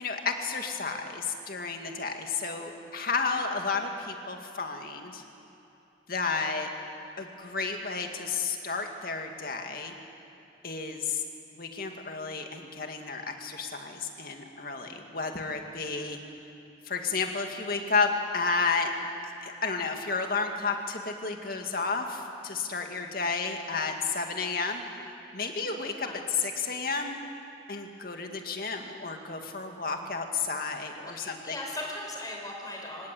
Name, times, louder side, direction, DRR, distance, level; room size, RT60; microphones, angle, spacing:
voice 1, 0.0-5.2 6.1-6.7 7.2-9.9 10.6-11.2 11.5-16.2 16.9-18.9 19.2-24.8 25.3-26.1 26.4-27.2 27.7-31.6, left 4 dB, 55° left, 4 dB, 2.3 m, -32 dB
voice 2, 31.0-33.1, left 1 dB, 20° left, 0 dB, 5.0 m, -38 dB
26.0 x 19.0 x 8.5 m, 2.8 s
head